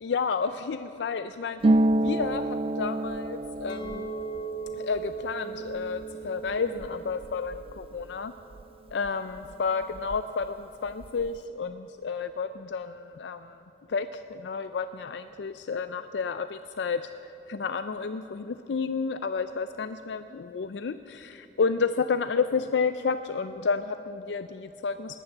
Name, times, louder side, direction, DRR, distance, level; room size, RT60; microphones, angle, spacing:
voice 1, 0.0-4.1 4.7-8.3 8.9-13.6 13.9-25.2, left 5 dB, 90° left, 11 dB, 0.4 m, -31 dB
Harp, 1.6-9.1 9.4-10.5 10.7-11.4, right 1 dB, 30° right, 0.3 m, -30 dB
Chink clink, 3.7-8.9, right 5 dB, 25° left, 0.5 m, -40 dB
19.5 x 10.0 x 7.2 m, 2.9 s
head